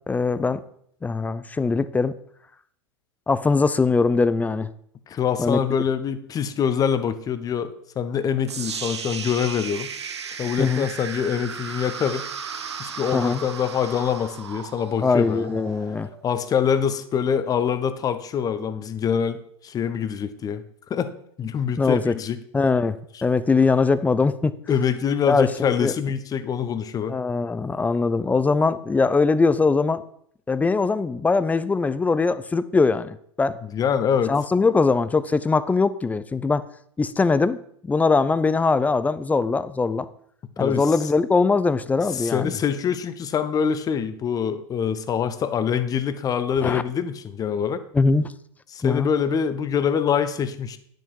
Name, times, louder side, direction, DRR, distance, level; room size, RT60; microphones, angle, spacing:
voice 1, 0.1-0.6 1.0-2.1 3.3-4.7 5.4-5.6 10.6-10.9 13.1-13.4 15.0-16.1 21.8-22.2 22.5-24.5 25.3-25.9 27.1-30.0 30.5-33.6 34.3-36.7 37.0-37.6 37.8-40.1 40.6-42.5 46.6-46.8 47.9-48.3 48.8-49.1, left 4 dB, 10° left, 15 dB, 0.5 m, -21 dB
voice 2, 5.1-9.9 10.4-12.3 12.8-15.5 16.2-20.6 20.9-21.1 21.4-22.4 24.7-27.2 33.7-34.3 40.6-40.8 42.1-47.8 48.7-50.8, left 7 dB, 25° left, 11 dB, 0.9 m, -25 dB
sound 1, 8.5-16.5, right 6 dB, 80° right, 0.9 m, -35 dB
10.0 x 6.6 x 4.6 m, 0.65 s
hypercardioid pair, 95°, 14 cm